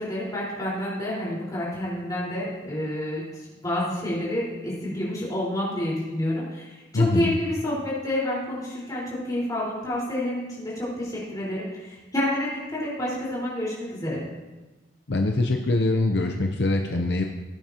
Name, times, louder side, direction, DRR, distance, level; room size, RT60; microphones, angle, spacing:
voice 1, 0.0-14.2, left 1 dB, 20° left, -7 dB, 4.4 m, -29 dB
voice 2, 6.9-7.3 15.1-17.2, left 2 dB, 65° left, 3 dB, 0.7 m, -23 dB
18.0 x 9.1 x 2.9 m, 1.2 s
head